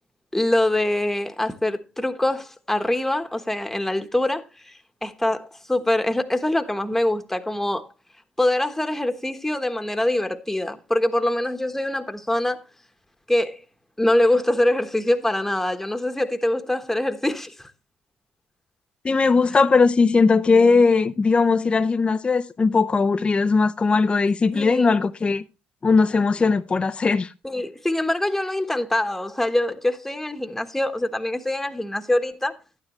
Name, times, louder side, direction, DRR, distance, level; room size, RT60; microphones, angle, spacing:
voice 1, 0.3-4.7 5.0-7.8 8.4-12.6 13.3-13.6 14.0-17.7 24.5-25.0 27.4-32.5, left 1 dB, 5° left, 1.2 m, -24 dB
voice 2, 19.0-25.4 25.8-27.3, left 4 dB, 25° left, 0.6 m, -19 dB
11.5 x 9.7 x 3.1 m
supercardioid pair, 70°, 4 cm